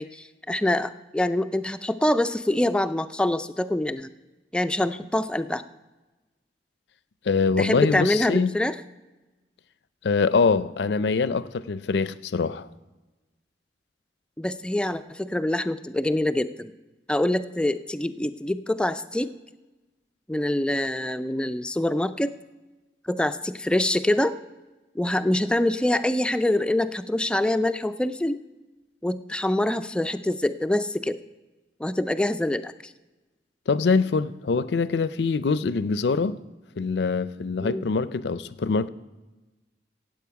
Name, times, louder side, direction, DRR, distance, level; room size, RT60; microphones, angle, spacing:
voice 1, 0.0-4.1 4.5-5.6 7.6-8.8 14.4-16.7 17.1-19.3 20.3-22.3 23.1-24.3 25.0-28.4 29.0-31.2 31.8-32.9 37.6-37.9, left 1 dB, 5° left, 0.3 m, -25 dB
voice 2, 7.3-8.5 10.0-12.7 33.7-36.4 36.8-38.9, left 4 dB, 70° left, 0.4 m, -24 dB
16.0 x 7.8 x 4.7 m
head